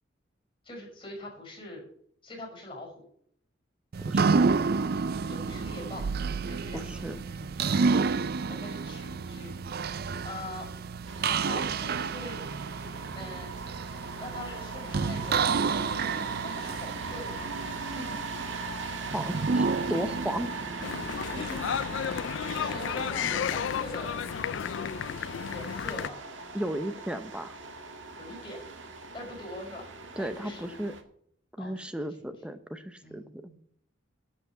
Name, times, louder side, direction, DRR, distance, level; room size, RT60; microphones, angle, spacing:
voice 1, 0.6-1.8 2.2-3.1 5.3-6.1 6.4-7.9 8.5-10.7 11.2-12.4 13.1-13.8 14.2-18.2 21.3-22.2 22.5-24.2 25.5-26.2 28.2-28.7 29.1-29.9 30.2-30.7 31.6-32.3 33.0-33.6, left 1 dB, 30° left, 0 dB, 5.7 m, -43 dB
sound 1, 3.9-21.8, right 4 dB, 50° right, 0.4 m, -30 dB
voice 2, 4.1-4.4 6.7-7.2 19.1-20.5 26.5-27.6 30.2-30.9 31.6-33.2, equal, 5° right, 10 dB, 0.7 m, -34 dB
sound 2, 11.0-31.0, right 3 dB, 75° right, 1.7 m, -40 dB
sound 3, 20.8-26.1, left 8 dB, 70° left, 0.4 m, -32 dB
12.0 x 5.8 x 7.8 m, 0.64 s
head